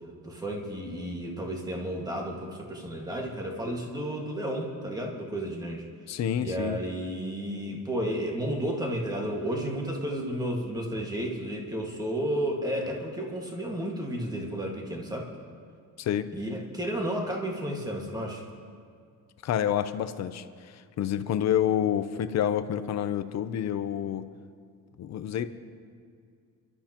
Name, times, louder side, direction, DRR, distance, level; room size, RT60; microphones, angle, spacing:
voice 1, 0.2-5.8 6.4-15.3 16.3-18.4, right 1 dB, 10° right, -1 dB, 1.9 m, -32 dB
voice 2, 6.1-6.8 16.0-16.3 19.4-24.3 25.0-25.5, left 10 dB, 50° left, 11 dB, 0.7 m, -28 dB
29.0 x 12.5 x 3.0 m, 2.2 s
cardioid pair, 160°, 34 cm